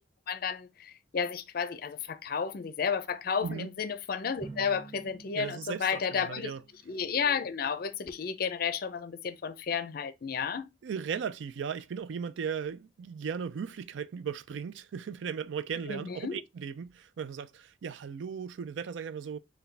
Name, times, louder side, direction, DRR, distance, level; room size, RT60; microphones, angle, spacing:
voice 1, 0.3-6.5 6.9-10.7 15.9-16.4, left 6 dB, 50° left, 0.5 m, -32 dB
voice 2, 3.4-3.7 5.4-6.6 10.8-19.4, right 6 dB, 75° right, 0.4 m, -37 dB
Drum, 4.4-7.1, right 3 dB, 30° right, 1.9 m, -49 dB
4.6 x 2.2 x 3.2 m
head